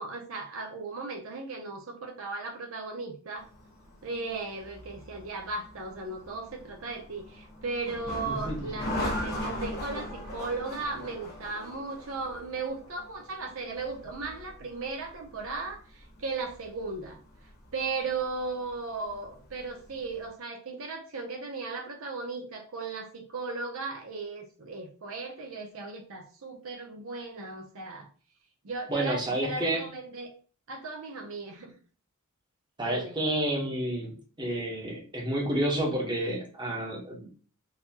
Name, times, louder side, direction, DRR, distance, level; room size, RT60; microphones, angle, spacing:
voice 1, 0.0-3.5 4.0-17.2 17.7-28.1 28.6-30.3 30.7-31.7 32.8-33.1, right 3 dB, 70° right, 2 dB, 0.7 m, -36 dB
sound 1, 3.4-20.3, left 1 dB, 45° left, 1.2 m, -40 dB
voice 2, 8.3-8.7 28.9-29.8 32.8-34.1 34.4-37.4, right 1 dB, 20° right, -1 dB, 1.0 m, -30 dB
3.9 x 2.8 x 2.8 m, 0.40 s
head